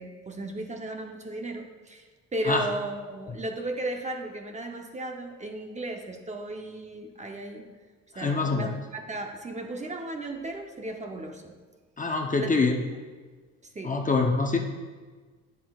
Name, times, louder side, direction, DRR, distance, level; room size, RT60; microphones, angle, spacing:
voice 1, 0.0-2.0 2.3-7.7 8.2-11.5 12.4-12.5 13.7-14.0, right 2 dB, 25° right, 3 dB, 0.8 m, -35 dB
voice 2, 8.2-8.7 12.0-12.8 13.8-14.6, left 3 dB, 25° left, 3 dB, 0.7 m, -25 dB
9.5 x 7.5 x 2.4 m, 1.4 s
cardioid pair, 90°, 30 cm